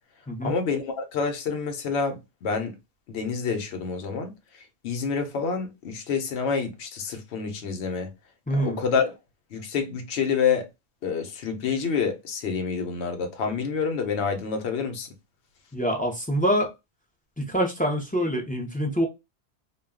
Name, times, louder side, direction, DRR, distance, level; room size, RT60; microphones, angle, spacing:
voice 1, 0.4-2.7 3.1-4.3 4.8-8.1 8.5-9.1 9.5-10.7 11.0-15.1, left 5 dB, 75° left, 0.9 m, -28 dB
voice 2, 8.5-8.8 15.7-16.7 17.4-19.1, equal, 10° left, 0.4 m, -25 dB
2.2 x 2.2 x 3.5 m
omnidirectional pair, 1.1 m